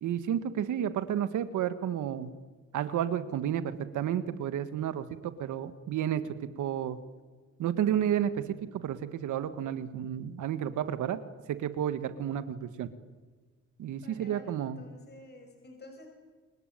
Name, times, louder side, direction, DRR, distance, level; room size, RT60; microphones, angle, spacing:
voice 1, 0.0-2.3 2.7-7.0 7.6-11.2 11.5-12.9 13.8-14.8, right 10 dB, 80° right, 11 dB, 1.8 m, -31 dB
voice 2, 13.9-16.1, left 1 dB, 35° left, 4 dB, 6.5 m, -51 dB
28.5 x 22.5 x 9.3 m, 1.4 s
cardioid pair, 90°, 30 cm